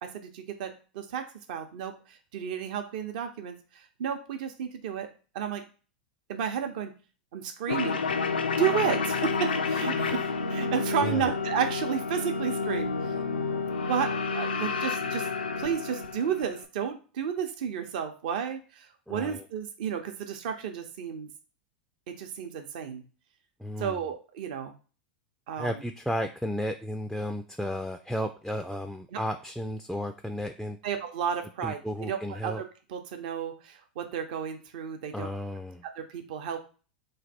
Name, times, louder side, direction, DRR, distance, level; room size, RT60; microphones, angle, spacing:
voice 1, 0.0-5.1 5.3-5.6 6.3-6.9 7.3-8.1 8.6-13.2 13.9-15.3 15.6-21.3 22.1-23.0 23.8-24.7 25.5-25.8 29.1-29.2 30.8-32.6 32.9-35.3 36.0-36.6, right 8 dB, 65° right, 6 dB, 0.7 m, -32 dB
sound 1, 7.7-16.6, left 4 dB, 90° left, 0.4 m, -30 dB
voice 2, 19.1-19.4 23.6-24.0 25.6-30.8 31.6-32.6 35.1-35.8, equal, ahead, 6 dB, 0.3 m, -33 dB
3.2 x 2.3 x 4.2 m, 0.36 s
hypercardioid pair, 95°, 5 cm